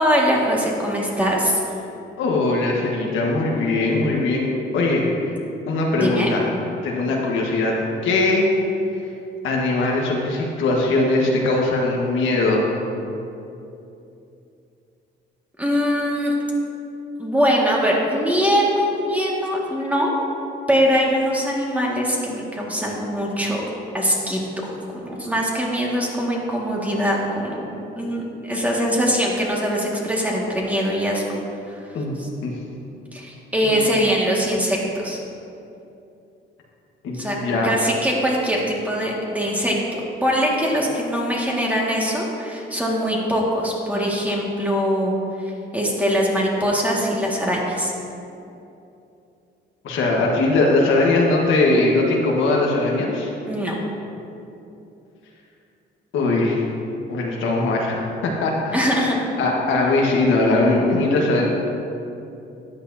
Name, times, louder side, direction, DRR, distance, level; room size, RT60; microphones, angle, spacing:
voice 1, 0.0-1.6 5.9-6.3 15.6-16.4 17.2-20.1 20.7-23.6 23.9-31.2 31.7-31.8 32.2-32.3 33.1-35.2 37.2-37.4 37.6-45.2 45.7-47.9 53.5-53.8 58.7-59.2, equal, 5° right, -3 dB, 2.0 m, -22 dB
voice 2, 2.2-5.3 5.6-6.4 6.8-7.7 8.0-8.5 9.4-12.7 31.9-32.5 33.6-33.7 37.0-37.7 49.8-53.3 56.1-56.6 57.1-58.9 59.4-61.5, left 2 dB, 80° left, -2 dB, 1.5 m, -20 dB
13.0 x 8.8 x 2.8 m, 2.8 s
cardioid pair, 90°, 20 cm